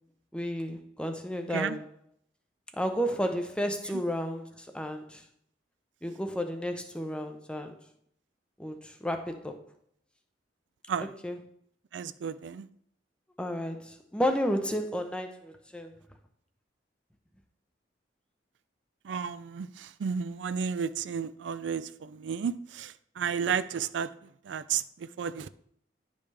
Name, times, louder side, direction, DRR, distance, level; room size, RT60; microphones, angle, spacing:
voice 1, 0.3-1.8 2.7-5.2 6.0-7.8 8.6-9.6 11.2-11.4 13.4-15.9, equal, 5° left, 0.6 m, -32 dB
voice 2, 11.9-12.7 19.0-24.1 24.5-25.5, right 7 dB, 85° right, 0.4 m, -32 dB
10.5 x 5.3 x 3.3 m
head